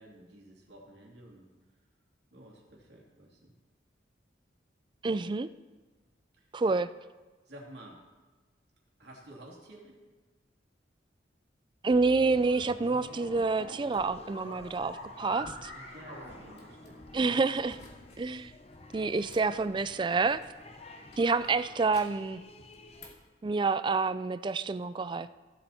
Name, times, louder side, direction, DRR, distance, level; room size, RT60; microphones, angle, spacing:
voice 1, 0.0-1.5 2.3-3.5 6.4-6.6 7.4-8.0 9.0-10.0 15.4-17.5, right 1 dB, 60° right, -3 dB, 2.8 m, -51 dB
voice 2, 5.0-5.5 6.5-6.9 11.8-15.7 17.1-17.8 18.2-18.5 18.9-20.4 21.2-22.4 23.4-25.3, right 4 dB, 25° right, 14 dB, 0.3 m, -28 dB
sound 1, 11.9-17.4, left 1 dB, 85° left, 3.9 m, -46 dB
sound 2, 12.2-23.1, left 2 dB, 35° left, 0.8 m, -52 dB
sound 3, 16.5-16.9 17.6-18.2 18.5-20.7 21.1-22.3 22.7-23.3, left 3 dB, 60° left, 2.6 m, -55 dB
15.5 x 7.0 x 4.3 m, 1.2 s
head